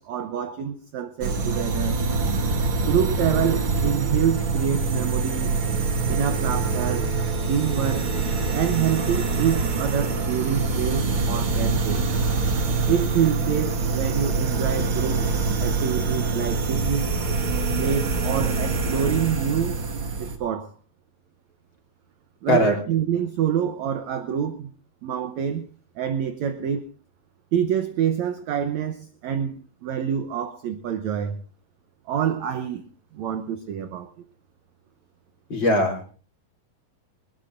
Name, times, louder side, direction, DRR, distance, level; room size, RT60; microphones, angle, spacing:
voice 1, 0.0-2.0 2.8-5.5 6.1-7.1 7.5-8.1 8.5-12.1 12.9-15.3 15.6-17.1 17.7-19.8 20.2-20.7 22.4-24.7 25.0-25.7 26.0-26.9 27.5-31.4 32.1-32.8 33.1-34.1, right 9 dB, 80° right, 1.6 m, -26 dB
sound 1, 1.2-20.4, right 4 dB, 45° right, 1.9 m, -25 dB
voice 2, 35.5-36.1, left 1 dB, 30° left, 3.8 m, -20 dB
21.0 x 20.5 x 2.6 m
omnidirectional pair, 4.4 m